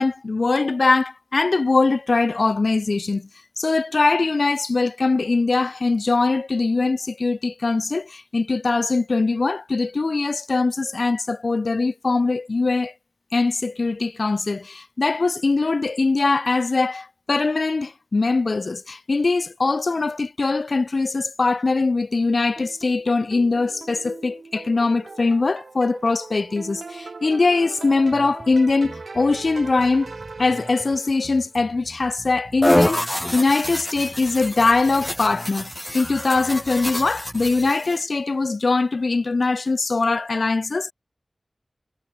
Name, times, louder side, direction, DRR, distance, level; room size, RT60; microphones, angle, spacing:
voice 1, 0.0-3.3 3.6-12.9 13.3-30.1 30.4-40.9, left 3 dB, 70° left, 1.1 m, -22 dB
sound 1, 22.6-31.4, right 4 dB, 90° right, 7.3 m, -40 dB
sound 2, 28.1-37.7, right 2 dB, 40° right, 3.1 m, -44 dB
sound 3, 32.6-38.0, left 1 dB, 15° left, 1.2 m, -26 dB
wide cardioid pair, 70°, 0 cm